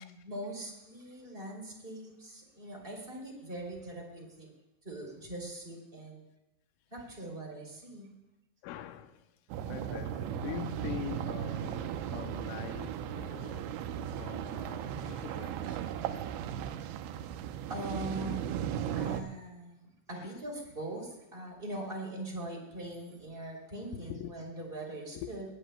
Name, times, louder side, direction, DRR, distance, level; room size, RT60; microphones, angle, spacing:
voice 1, 0.0-4.5 4.8-6.2 6.9-8.1 17.7-25.4, right 1 dB, 15° right, 2.1 m, -42 dB
voice 2, 8.6-13.9 14.2-15.9 20.1-20.4 23.9-24.3 24.6-24.7 25.1-25.3, left 11 dB, 90° left, 3.3 m, -44 dB
sound 1, 9.5-19.2, right 10 dB, 85° right, 2.7 m, -36 dB
19.5 x 18.5 x 2.2 m
omnidirectional pair, 5.7 m